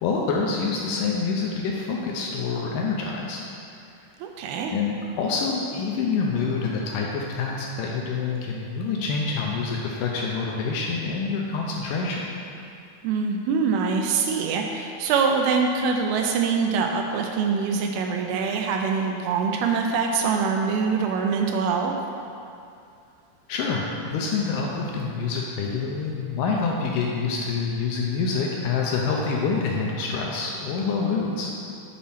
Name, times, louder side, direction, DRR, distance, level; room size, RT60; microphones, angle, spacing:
voice 1, 0.0-3.4 4.7-12.2 23.5-31.5, left 4 dB, 85° left, -1 dB, 1.9 m, -26 dB
voice 2, 4.2-4.7 13.0-21.9, right 5 dB, 85° right, 2 dB, 2.5 m, -24 dB
8.6 x 4.2 x 5.6 m, 2.5 s
omnidirectional pair, 4.5 m